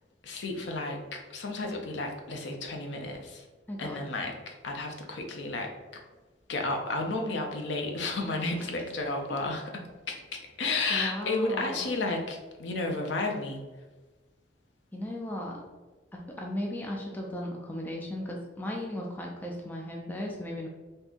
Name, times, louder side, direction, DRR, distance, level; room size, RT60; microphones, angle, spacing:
voice 1, 0.2-3.5 3.8-6.0 6.5-9.7 10.1-13.6, left 2 dB, 65° left, 2 dB, 0.5 m, -32 dB
voice 2, 3.7-4.0 10.9-11.9 14.9-15.6 16.1-20.7, left 1 dB, 10° left, -1 dB, 0.3 m, -36 dB
3.6 x 2.6 x 2.4 m, 1.3 s
head